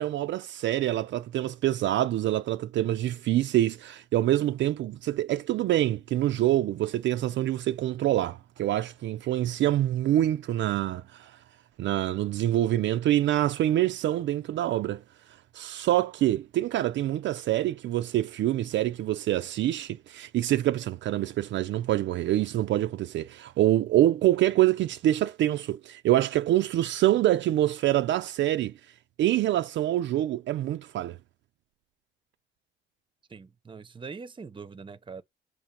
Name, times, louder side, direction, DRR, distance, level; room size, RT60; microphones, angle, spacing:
voice 1, 0.0-11.3 11.8-15.0 15.5-28.7 29.2-31.2, right 13 dB, 70° right, 0.4 m, -26 dB
voice 2, 33.3-35.2, right 5 dB, 25° right, 0.7 m, -42 dB
6.4 x 3.0 x 5.1 m
cardioid pair, 90°, 20 cm